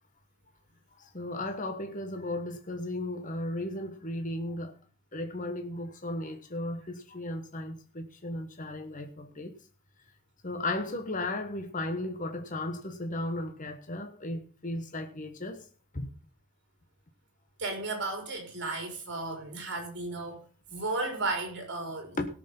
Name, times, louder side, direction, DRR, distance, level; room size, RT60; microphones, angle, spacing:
voice 1, 1.1-4.7 5.1-9.5 10.4-15.6 15.9-16.1 22.2-22.3, left 1 dB, 35° left, 1.4 m, -35 dB
voice 2, 17.6-20.4 20.7-22.2, right 2 dB, 55° right, 4.4 m, -34 dB
17.5 x 6.6 x 5.5 m
head